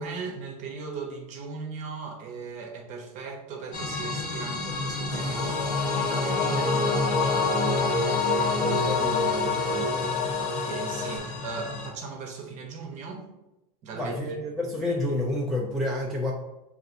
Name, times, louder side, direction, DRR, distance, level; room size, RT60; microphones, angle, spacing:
voice 1, 0.0-7.9 10.4-13.3 13.8-14.4, right 4 dB, 35° right, 2 dB, 0.7 m, -38 dB
sound 1, 3.7-11.9, left 2 dB, 60° left, 1.1 m, -31 dB
sound 2, 5.1-11.2, left 4 dB, 35° left, 0.8 m, -27 dB
voice 2, 8.6-10.1 13.9-16.3, left 1 dB, ahead, -4 dB, 0.3 m, -30 dB
5.4 x 2.5 x 2.5 m, 0.97 s
supercardioid pair, 145°, 21 cm